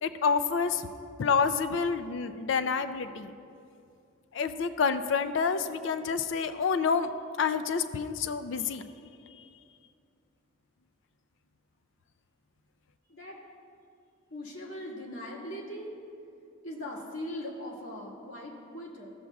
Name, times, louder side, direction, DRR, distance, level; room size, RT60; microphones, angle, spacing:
voice 1, 0.0-0.8 1.2-3.3 4.3-7.1 7.4-8.8, left 5 dB, 60° left, 11 dB, 0.3 m, -28 dB
voice 2, 13.1-13.4 14.3-15.9 16.6-19.1, left 1 dB, 85° left, -4 dB, 1.7 m, -40 dB
14.0 x 7.2 x 2.3 m, 2.5 s
head